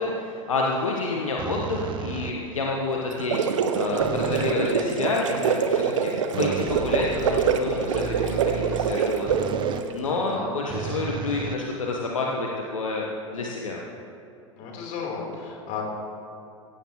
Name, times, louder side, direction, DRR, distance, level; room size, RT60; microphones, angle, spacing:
voice 1, 0.0-3.4 3.7-13.8, left 3 dB, 75° left, -1 dB, 1.3 m, -29 dB
sound 1, 1.4-2.6 4.0-4.7 6.3-9.9 10.7-12.2, right 8 dB, 30° right, 0.7 m, -34 dB
sound 2, 3.1-9.9, right 6 dB, 65° right, 0.9 m, -25 dB
voice 2, 14.6-15.8, left 6 dB, 45° left, -1 dB, 3.9 m, -33 dB
16.5 x 16.0 x 3.1 m, 2.7 s
figure-of-eight pair, 85°, 17 cm